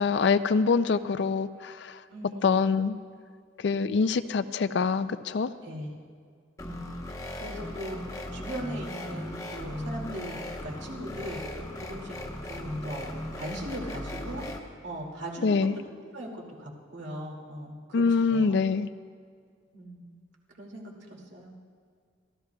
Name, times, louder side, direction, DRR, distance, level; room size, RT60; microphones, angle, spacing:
voice 1, 0.0-2.0 2.4-3.0 3.6-5.5 15.4-15.7 17.9-18.9, left 5 dB, 65° left, 12 dB, 0.4 m, -25 dB
voice 2, 2.1-2.6 5.6-5.9 6.6-11.4 11.7-12.2 12.4-15.8 16.1-18.6 19.7-20.2 20.5-21.6, right 1 dB, 65° right, -1 dB, 2.3 m, -40 dB
sound 1, 6.6-14.6, left 1 dB, 15° left, 1.0 m, -37 dB
25.0 x 14.0 x 2.3 m, 2.1 s
head